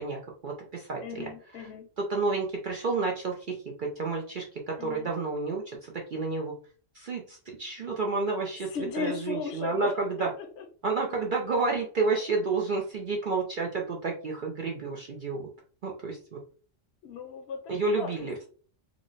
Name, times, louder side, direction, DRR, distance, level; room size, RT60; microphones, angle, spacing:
voice 1, 0.0-1.3 2.0-6.5 6.9-10.3 10.8-15.5 15.8-16.4 17.7-18.5, right 3 dB, 55° right, 0 dB, 0.6 m, -30 dB
voice 2, 1.0-1.9 4.8-5.1 8.7-10.6 17.0-18.3, left 5 dB, 65° left, 5 dB, 0.9 m, -37 dB
3.0 x 2.1 x 3.8 m, 0.42 s
omnidirectional pair, 1.3 m